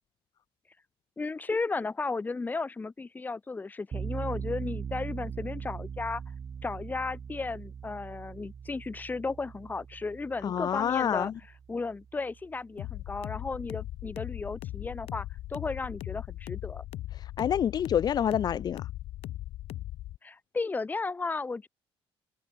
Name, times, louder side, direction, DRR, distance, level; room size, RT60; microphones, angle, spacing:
voice 1, 1.2-6.2 6.6-11.3 11.7-16.8 20.2-21.7, left 3 dB, 15° left, 2.2 m, -34 dB
sound 1, 3.9-12.8, right 7 dB, 35° right, 3.4 m, -40 dB
voice 2, 10.4-11.3 17.1-18.9, left 9 dB, 40° left, 0.9 m, -28 dB
sound 2, 12.8-20.2, left 15 dB, 80° left, 3.0 m, -39 dB
cardioid pair, 155°, 10 cm